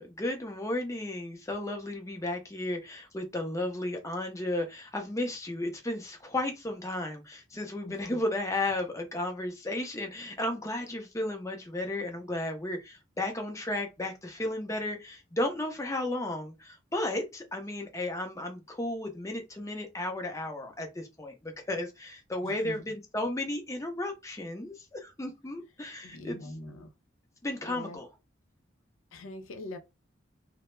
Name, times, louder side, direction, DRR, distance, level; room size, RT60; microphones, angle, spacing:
voice 1, 0.0-26.5 27.4-28.1, left 1 dB, 15° left, 0.5 m, -34 dB
voice 2, 7.8-8.2 22.4-22.8 26.0-26.9 27.6-28.0 29.1-29.8, left 1 dB, 90° left, 0.5 m, -43 dB
2.2 x 2.0 x 3.1 m
head